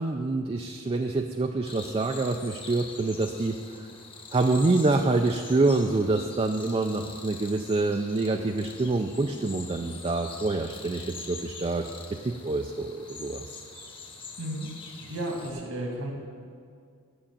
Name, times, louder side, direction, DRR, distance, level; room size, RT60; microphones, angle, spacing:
voice 1, 0.0-3.9 4.3-13.6, right 3 dB, 25° right, 4 dB, 0.4 m, -26 dB
sound 1, 1.6-15.5, left 4 dB, 25° left, 1.1 m, -44 dB
voice 2, 14.4-14.7 15.0-16.1, right 1 dB, 75° right, 0 dB, 1.8 m, -33 dB
9.8 x 6.4 x 8.6 m, 2.3 s
head